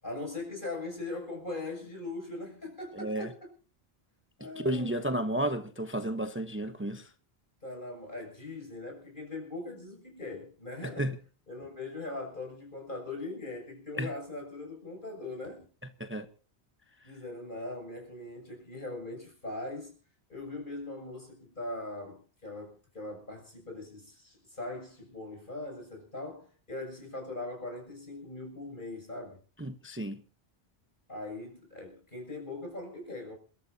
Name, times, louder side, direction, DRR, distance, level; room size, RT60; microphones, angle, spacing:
voice 1, 0.0-3.5 4.4-5.0 7.6-11.1 11.5-15.7 17.0-19.9 20.3-29.4 31.1-33.4, left 2 dB, 50° left, 7.1 m, -40 dB
voice 2, 2.9-3.3 4.5-7.1 11.0-11.2 13.9-14.1 16.0-16.3 29.6-30.2, right 1 dB, 10° right, 0.8 m, -32 dB
29.0 x 13.0 x 2.7 m
omnidirectional pair, 1.1 m